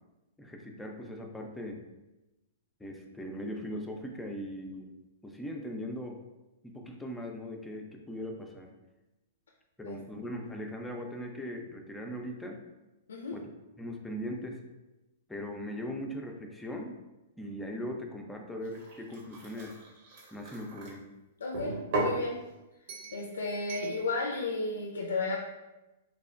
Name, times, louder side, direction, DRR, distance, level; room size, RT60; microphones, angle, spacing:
voice 1, 0.4-1.8 2.8-4.9 5.2-6.2 6.6-8.7 9.8-12.6 13.3-13.5 13.8-14.6 15.3-17.0 17.4-19.8 20.3-21.1, equal, 5° left, 1 dB, 0.4 m, -39 dB
voice 2, 9.8-10.2 13.1-13.4 21.4-22.4 23.1-25.4, left 3 dB, 80° left, 0 dB, 0.3 m, -33 dB
sound 1, 18.6-20.9 21.5-22.2 22.9-23.2 23.7-23.9, right 2 dB, 55° right, 0.8 m, -36 dB
3.2 x 2.0 x 2.4 m, 1.0 s
hypercardioid pair, 125°, 0 cm